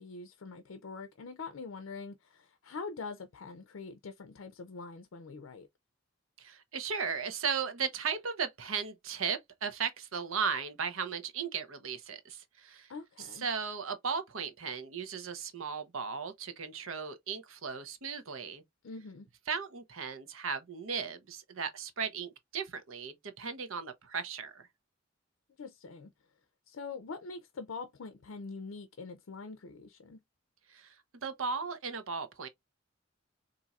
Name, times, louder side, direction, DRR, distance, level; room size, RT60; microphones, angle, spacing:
voice 1, 0.0-5.7 12.9-13.5 18.8-19.3 25.6-26.1 26.7-30.2, left 4 dB, 80° left, 0.5 m, -44 dB
voice 2, 6.4-12.9 13.2-18.6 19.5-24.6 30.7-32.5, right 6 dB, 90° right, 0.8 m, -36 dB
4.1 x 2.7 x 2.3 m
head